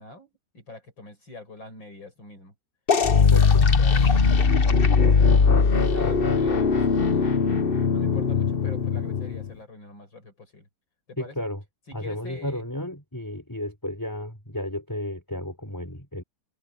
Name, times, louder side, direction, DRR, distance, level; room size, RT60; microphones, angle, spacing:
voice 1, 0.0-2.5 3.1-7.4 7.9-10.7 11.1-11.5 11.9-12.6, left 2 dB, 60° left, 7.9 m, -45 dB
sound 1, 2.9-9.5, left 5 dB, 35° left, 0.9 m, -20 dB
voice 2, 3.1-3.7 11.2-11.6 11.9-16.2, left 1 dB, 10° left, 5.1 m, -33 dB
omnidirectional pair, 2.3 m